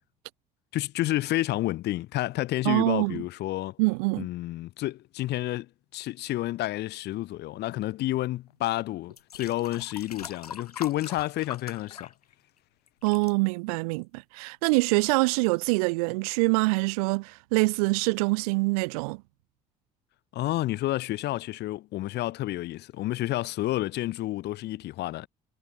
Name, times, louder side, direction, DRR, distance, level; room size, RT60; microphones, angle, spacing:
voice 1, 0.7-3.8 4.2-5.7 5.9-12.1 20.3-25.3, left 16 dB, 60° left, 7.8 m, -30 dB
voice 2, 2.7-3.2 3.8-4.3 13.0-19.2, right 28 dB, 75° right, 1.7 m, -25 dB
sound 1, 8.5-8.6 9.1-12.6 12.9-13.3 14.0-14.1, left 7 dB, 90° left, 5.6 m, -42 dB
hypercardioid pair, 55°, 19 cm